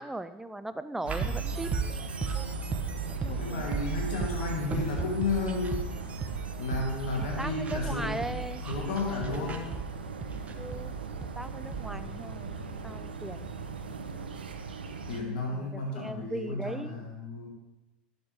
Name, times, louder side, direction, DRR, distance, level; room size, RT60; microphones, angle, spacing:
voice 1, 0.0-1.7 3.2-3.8 7.2-8.6 9.3-9.7 10.6-11.0 11.4-12.6 12.8-13.6 15.5-17.0, right 1 dB, 5° right, 12 dB, 0.5 m, -38 dB
sound 1, 1.0-15.2, right 4 dB, 90° right, 0.7 m, -40 dB
sound 2, 1.1-12.0, right 5 dB, 25° right, 0.9 m, -35 dB
voice 2, 3.3-5.9 6.6-9.7 15.1-17.5, left 3 dB, 70° left, -1 dB, 1.8 m, -33 dB
11.0 x 7.3 x 3.4 m, 1.0 s
hypercardioid pair, 80°, 5 cm